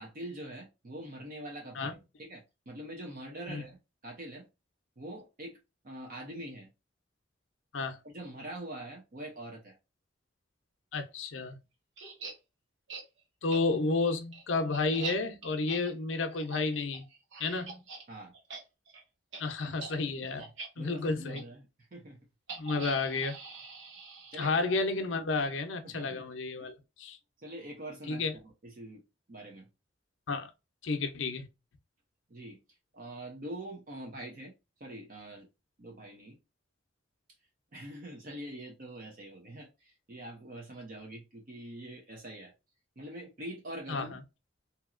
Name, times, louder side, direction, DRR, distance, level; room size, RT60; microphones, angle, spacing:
voice 1, 0.0-3.8 4.0-4.5 5.0-5.6 5.8-6.7 8.0-9.8 18.1-18.3 19.6-19.8 20.2-20.5 20.8-22.2 24.3-24.6 25.8-26.2 27.4-29.0 29.3-29.7 32.3-32.6 32.9-34.5 34.8-35.5 35.8-36.4 37.7-42.5 43.0-44.2, right 1 dB, 50° right, 0.8 m, -44 dB
voice 2, 10.9-11.6 13.4-17.1 17.4-17.8 19.4-20.4 20.8-21.4 22.6-23.4 24.4-27.2 28.1-28.3 30.3-30.5 30.8-31.5 43.9-44.1, left 3 dB, 90° left, 0.6 m, -31 dB
sound 1, 12.0-12.3 12.9-13.0 13.5-13.6 14.0-18.0 18.3-18.6 18.9-19.0 19.3-19.4 19.8-19.9 20.4-20.7 21.3-21.4 22.5-24.8, right 4 dB, 75° right, 0.9 m, -43 dB
2.8 x 2.7 x 2.4 m
head